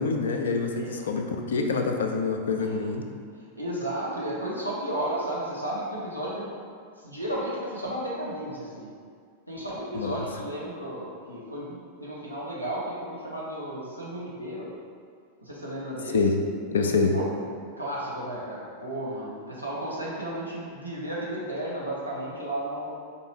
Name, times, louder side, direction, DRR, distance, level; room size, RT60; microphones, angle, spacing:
voice 1, 0.0-3.1 9.9-10.2 16.1-17.2, left 4 dB, 65° left, 4 dB, 0.3 m, -26 dB
voice 2, 0.7-1.2 2.6-2.8 3.5-6.5 7.0-8.9 9.5-14.7 15.4-16.2 17.1-17.2 17.8-22.9, right 1 dB, 90° right, -6 dB, 0.7 m, -33 dB
4.4 x 2.5 x 3.3 m, 2.2 s
figure-of-eight pair, 90°, 0 cm